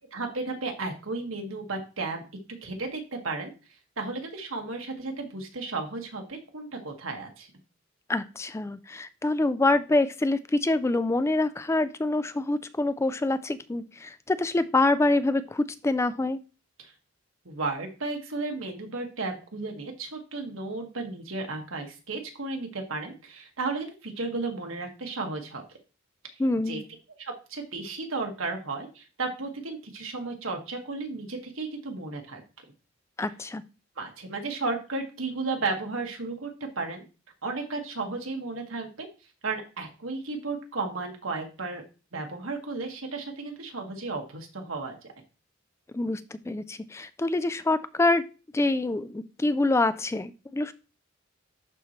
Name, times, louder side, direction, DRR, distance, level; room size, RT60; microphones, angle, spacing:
voice 1, 0.1-2.2 2.6-3.5 4.0-7.5 16.8-16.9 17.4-25.8 26.7-26.8 27.2-32.4 34.0-36.5 36.7-37.0 37.4-39.1 39.4-41.8 42.1-45.0, right 3 dB, 80° right, 3 dB, 1.7 m, -34 dB
voice 2, 8.1-16.4 26.4-26.8 33.2-33.6 45.9-46.2 46.5-48.2 48.5-50.7, left 2 dB, 15° left, 13 dB, 0.3 m, -26 dB
11.5 x 4.3 x 3.1 m, 0.33 s
head